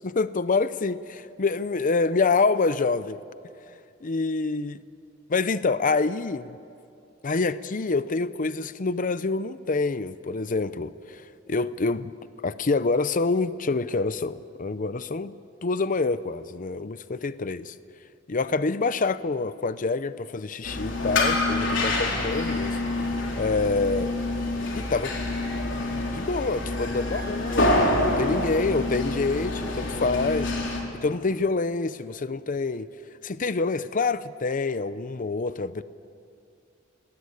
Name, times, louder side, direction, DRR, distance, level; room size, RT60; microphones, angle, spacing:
voice 1, 0.0-3.2 4.0-4.8 5.3-6.6 7.2-12.1 12.4-15.3 15.6-17.7 18.3-22.8 23.4-24.1 24.8-25.2 25.8-30.5 31.0-32.9 33.2-35.8, left 3 dB, 45° left, 14 dB, 0.6 m, -26 dB
sound 1, 20.6-30.8, left 2 dB, 70° left, 4.4 m, -27 dB
29.0 x 20.0 x 8.5 m, 2.5 s
head